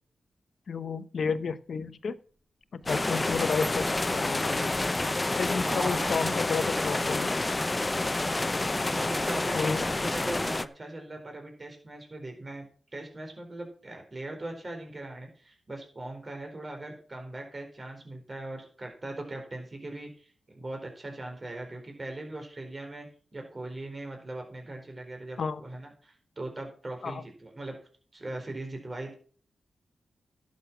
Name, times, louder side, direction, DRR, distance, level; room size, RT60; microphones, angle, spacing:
voice 1, 0.7-2.2 2.7-4.7 5.4-7.4 9.5-9.8 25.4-25.6 27.0-27.2, left 5 dB, 70° left, 14 dB, 0.8 m, -31 dB
sound 1, 2.8-2.9 3.2-6.3, left 1 dB, 10° left, 4.2 m, -47 dB
sound 2, 2.9-10.7, left 2 dB, 30° left, 0.7 m, -28 dB
voice 2, 5.6-6.1 8.9-12.7 12.9-23.1 23.3-27.8 28.1-29.1, right 2 dB, 35° right, 2 dB, 4.3 m, -40 dB
11.5 x 7.4 x 6.0 m, 0.43 s
cardioid pair, 50°, 0 cm